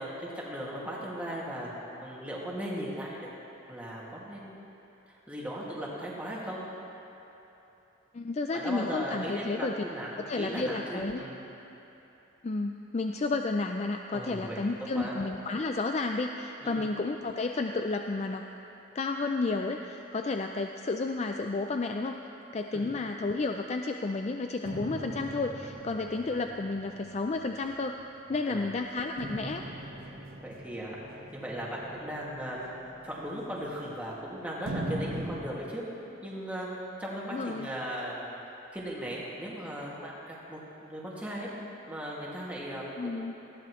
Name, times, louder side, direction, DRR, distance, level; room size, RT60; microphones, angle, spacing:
voice 1, 0.0-1.7 2.0-3.3 3.7-4.6 5.1-6.6 8.5-11.4 14.1-15.2 16.6-16.9 22.7-22.9 28.5-28.7 30.4-32.8 33.0-35.8 36.2-38.4 38.7-41.5 41.9-43.3, equal, 5° right, -6 dB, 2.2 m, -37 dB
voice 2, 8.1-9.7 10.2-11.2 12.4-18.5 18.9-22.2 22.5-28.0 28.3-29.6 37.3-37.7 43.0-43.3, left 3 dB, 35° left, 4 dB, 0.4 m, -31 dB
sound 1, 24.6-28.3 29.2-34.2 34.6-35.4, right 1 dB, 90° right, 1.4 m, -41 dB
19.0 x 15.0 x 3.2 m, 3.0 s
head